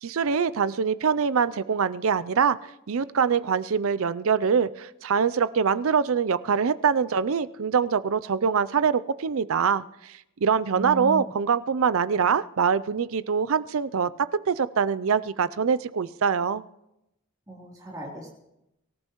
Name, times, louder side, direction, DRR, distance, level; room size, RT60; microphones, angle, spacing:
voice 1, 0.0-2.6 2.9-10.1 10.4-14.1 14.5-16.6, right 6 dB, 65° right, 15 dB, 0.5 m, -24 dB
voice 2, 10.7-11.3 17.5-18.3, right 2 dB, 15° right, -3 dB, 3.2 m, -35 dB
24.5 x 14.0 x 3.1 m, 0.86 s
head